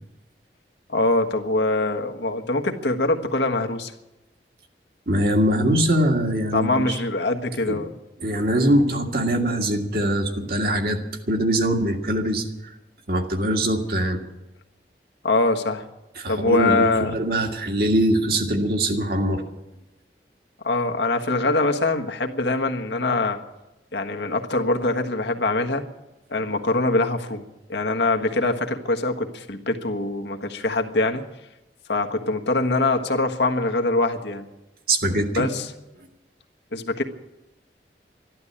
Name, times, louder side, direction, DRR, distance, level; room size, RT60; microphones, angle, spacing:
voice 1, 0.9-3.9 6.5-7.9 15.2-15.8 16.3-17.1 20.6-23.4 23.9-25.9 26.3-27.4 27.7-31.2 31.9-34.4 35.3-35.7 36.7-37.0, left 2 dB, 80° left, 4 dB, 1.4 m, -23 dB
voice 2, 5.1-7.0 7.7-7.8 8.2-11.0 11.3-12.5 13.1-14.2 16.2-19.4 34.9-35.5, right 1 dB, 55° right, 3 dB, 1.9 m, -22 dB
13.0 x 12.0 x 8.6 m, 0.97 s
head